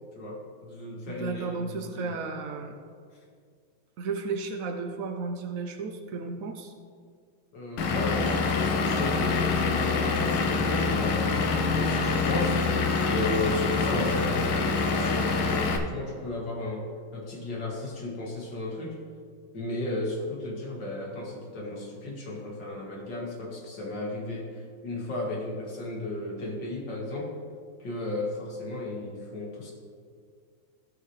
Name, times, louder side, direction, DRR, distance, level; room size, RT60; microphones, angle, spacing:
voice 1, 0.2-2.2 7.5-19.0 19.5-27.4 27.8-29.7, left 2 dB, 55° left, -2 dB, 2.1 m, -34 dB
voice 2, 1.0-2.7 4.0-6.7, right 4 dB, 90° right, 4 dB, 0.7 m, -33 dB
Vehicle / Engine, 7.8-15.8, left 4 dB, 80° left, 1.6 m, -26 dB
15.5 x 5.7 x 3.1 m, 2.1 s
omnidirectional pair, 2.3 m